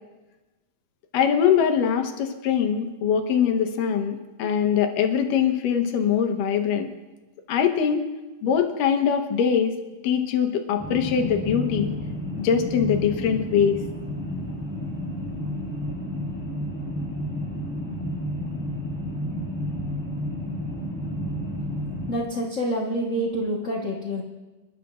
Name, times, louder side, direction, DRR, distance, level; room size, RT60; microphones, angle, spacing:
voice 1, 1.1-6.9 7.5-8.0 8.4-9.7 10.0-11.9 12.4-13.8, left 7 dB, 85° left, 5 dB, 2.7 m, -22 dB
sound 1, 10.8-22.1, left 1 dB, 5° left, 3.6 m, -31 dB
voice 2, 22.1-24.2, equal, 55° left, -2 dB, 0.8 m, -27 dB
27.0 x 11.5 x 2.5 m, 1.2 s
omnidirectional pair, 3.7 m